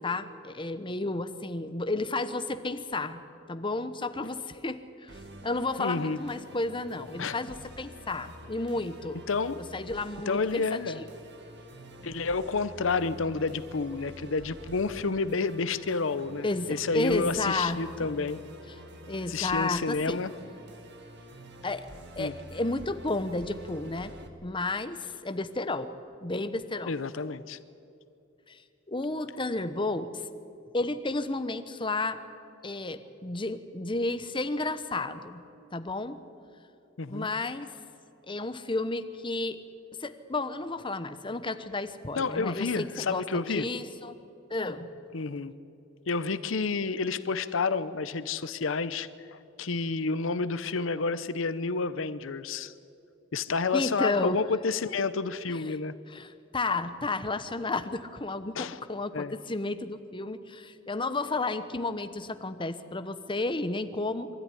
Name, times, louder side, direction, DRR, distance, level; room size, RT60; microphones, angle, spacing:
voice 1, 0.0-3.2 3.5-5.1 5.4-9.2 9.6-11.0 16.4-18.3 18.7-18.8 19.1-20.2 21.6-21.9 22.2-24.1 24.4-25.9 26.2-27.0 28.5-28.6 28.9-30.3 30.7-32.2 32.6-35.4 35.7-36.2 37.1-37.7 38.3-39.6 40.0-44.2 44.5-44.9 53.7-54.4 55.5-55.7 56.1-64.3, left 2 dB, 25° left, 10 dB, 1.0 m, -32 dB
Musical instrument, 5.1-24.3, right 1 dB, 60° right, 2.1 m, -48 dB
voice 2, 5.8-6.2 7.2-7.4 9.3-9.6 10.3-11.0 12.0-18.4 19.3-20.3 22.2-22.3 26.9-27.6 37.0-37.3 42.1-43.7 45.1-45.5 46.1-52.7 53.3-55.9 58.6-58.8 59.1-59.3, left 4 dB, 75° left, 14 dB, 0.7 m, -30 dB
24.0 x 13.5 x 10.0 m, 2.7 s
head